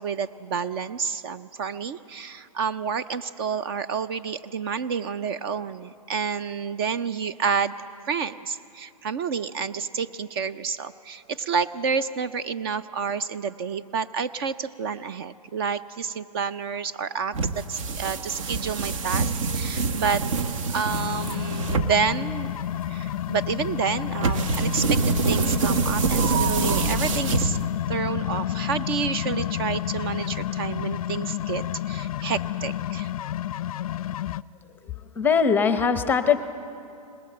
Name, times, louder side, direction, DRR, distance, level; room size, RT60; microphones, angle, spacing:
voice 1, 0.0-7.7 8.1-20.2 20.7-22.5 22.9-27.6 27.9-33.1, right 6 dB, 40° right, 13 dB, 0.5 m, -29 dB
sound 1, 17.3-27.9, right 4 dB, 55° right, 1.2 m, -26 dB
sound 2, 20.9-34.4, left 11 dB, 65° left, 0.4 m, -30 dB
voice 2, 34.6-36.4, left 6 dB, 10° left, 10 dB, 0.7 m, -22 dB
20.5 x 20.5 x 7.7 m, 2.6 s
hypercardioid pair, 140°, 20 cm